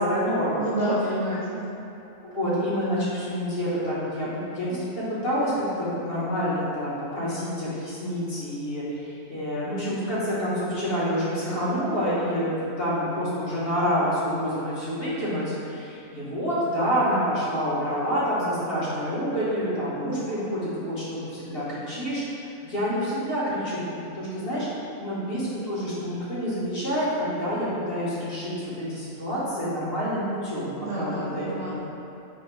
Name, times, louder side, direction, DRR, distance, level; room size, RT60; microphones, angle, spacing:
voice 1, 0.0-0.6 2.3-4.3 4.5-22.2 22.6-24.7 25.0-31.9, equal, 50° left, -9 dB, 1.1 m, -27 dB
voice 2, 0.6-1.7 30.8-31.8, right 1 dB, 50° right, -10 dB, 0.5 m, -28 dB
4.3 x 2.1 x 4.2 m, 2.8 s
omnidirectional pair, 1.4 m